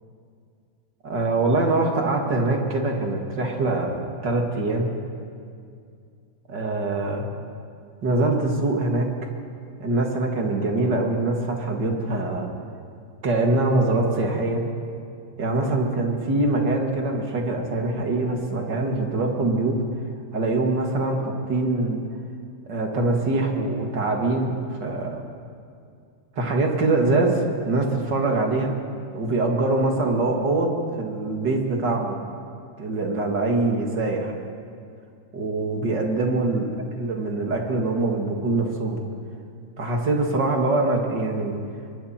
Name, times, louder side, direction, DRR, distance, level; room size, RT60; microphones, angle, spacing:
voice 1, 1.0-4.9 6.5-7.2 8.0-9.1 9.8-12.5 13.2-14.6 15.4-19.8 20.3-22.0 22.7-25.2 26.4-28.7 29.1-32.2 32.8-34.3 35.3-36.7 37.0-39.0 39.8-41.6, right 2 dB, 60° right, 1 dB, 2.8 m, -23 dB
25.5 x 23.0 x 4.4 m, 2.4 s
omnidirectional pair, 2.1 m